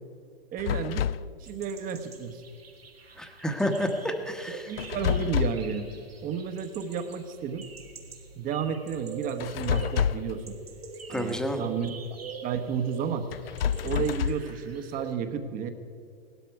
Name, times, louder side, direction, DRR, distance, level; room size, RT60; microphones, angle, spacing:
voice 1, 0.5-1.1 1.4-2.4 4.5-5.9 6.2-7.7 8.4-10.6 11.1-12.0 12.4-13.3 13.8-15.7, right 7 dB, 30° right, 9 dB, 1.2 m, -32 dB
sound 1, 0.6-1.3 4.8-5.7 9.4-10.4 13.3-14.5, left 8 dB, 75° left, 0.4 m, -28 dB
sound 2, 1.4-15.1, right 5 dB, 85° right, 2.0 m, -44 dB
voice 2, 3.2-4.7 11.1-11.6, equal, ahead, 5 dB, 1.2 m, -29 dB
17.5 x 12.5 x 4.7 m, 2.3 s
figure-of-eight pair, 105°, 29 cm